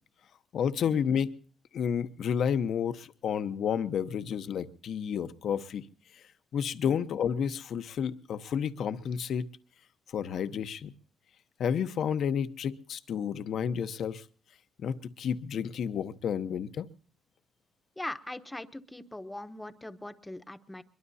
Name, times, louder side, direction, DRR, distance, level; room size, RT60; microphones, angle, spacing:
voice 1, 0.5-1.3 1.7-5.8 6.5-9.4 10.1-10.9 11.6-14.2 14.8-16.9, left 7 dB, 65° left, 11 dB, 1.0 m, -31 dB
voice 2, 18.0-20.8, left 1 dB, 10° left, 9 dB, 1.1 m, -41 dB
23.0 x 22.5 x 2.8 m, 0.43 s
cardioid pair, 90°, 0 cm